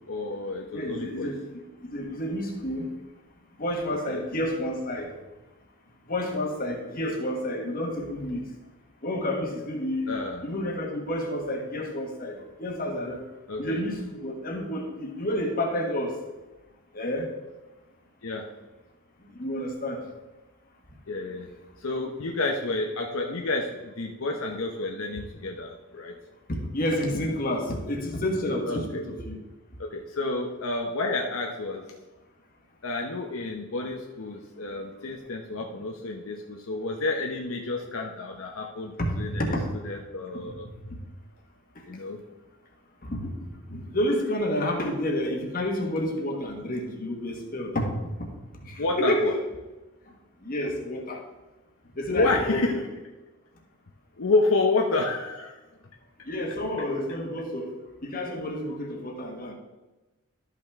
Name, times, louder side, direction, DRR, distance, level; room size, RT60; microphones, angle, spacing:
voice 1, 0.1-1.3 4.1-4.2 10.1-10.4 13.5-13.8 18.2-18.4 21.1-21.5 21.8-26.1 28.7-29.0 29.8-31.9 32.8-38.9 39.2-39.4 39.8-40.6 41.9-42.2 48.8-49.3 52.1-52.8 54.2-55.5, left 3 dB, 70° left, 1 dB, 0.8 m, -29 dB
voice 2, 0.7-1.4 1.8-2.9 3.6-5.1 6.1-8.4 9.0-10.1 10.4-13.2 13.6-16.2 16.9-17.3 19.2-20.0 26.5-29.4 39.0-39.7 40.5-40.6 43.0-43.3 43.7-48.3 48.6-49.4 50.4-51.2 52.0-52.8 56.2-59.5, left 1 dB, 40° left, 1 dB, 1.4 m, -30 dB
12.0 x 5.8 x 3.5 m, 1.1 s
head